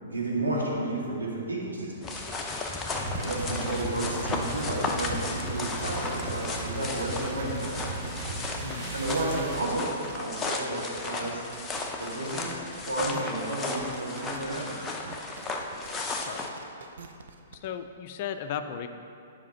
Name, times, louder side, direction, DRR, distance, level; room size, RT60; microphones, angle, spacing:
voice 1, 0.0-2.2 3.0-7.8 8.9-11.4 12.0-12.5 12.8-14.8, right 1 dB, 80° right, -4 dB, 1.9 m, -32 dB
sound 1, 2.0-16.5, left 3 dB, 15° left, 0.8 m, -34 dB
voice 2, 2.9-3.3 8.6-9.0 16.3-16.5 17.5-18.9, left 8 dB, 45° left, 9 dB, 0.5 m, -36 dB
sound 2, 3.0-9.7, right 3 dB, 45° right, 1.4 m, -36 dB
sound 3, 9.3-17.7, right 5 dB, 65° right, 0.6 m, -47 dB
7.4 x 5.0 x 5.6 m, 2.5 s
figure-of-eight pair, 115°, 0 cm